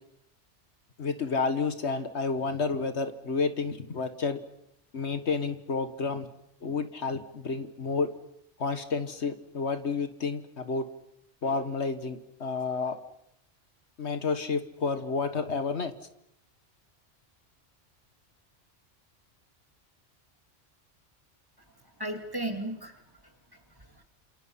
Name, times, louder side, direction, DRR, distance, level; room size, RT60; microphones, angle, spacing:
voice 1, 1.0-4.4 4.9-6.3 6.6-8.1 8.6-10.8 11.4-13.0 14.0-15.9, left 4 dB, 70° left, 9 dB, 1.7 m, -30 dB
voice 2, 22.0-24.0, right 1 dB, 20° right, 4 dB, 2.6 m, -37 dB
29.0 x 28.0 x 5.7 m, 0.79 s
omnidirectional pair, 1.2 m